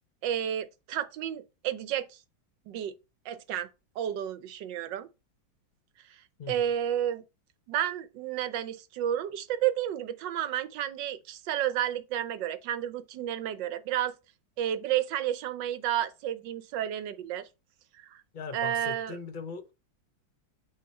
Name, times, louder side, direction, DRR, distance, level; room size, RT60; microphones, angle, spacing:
voice 1, 0.2-2.2 2.7-2.9 3.2-3.7 4.0-5.1 6.1-6.2 6.5-7.2 7.7-14.1 14.6-17.5 17.9-18.2 18.5-19.2, right 11 dB, 70° right, 1.4 m, -31 dB
voice 2, 18.3-19.7, left 5 dB, 35° left, 0.8 m, -39 dB
8.8 x 3.6 x 4.3 m
omnidirectional pair, 2.1 m